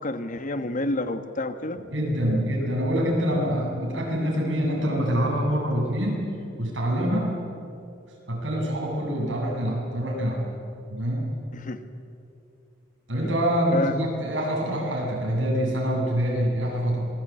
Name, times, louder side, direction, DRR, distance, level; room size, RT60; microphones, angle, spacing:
voice 1, 0.0-1.8 11.5-11.8 13.2-13.3 13.7-14.0, left 2 dB, 45° left, 10 dB, 1.4 m, -29 dB
voice 2, 1.9-6.3 6.6-7.3 8.3-10.4 10.9-11.3 13.1-17.1, equal, 80° right, -2 dB, 8.0 m, -25 dB
26.0 x 21.0 x 8.8 m, 2.7 s
head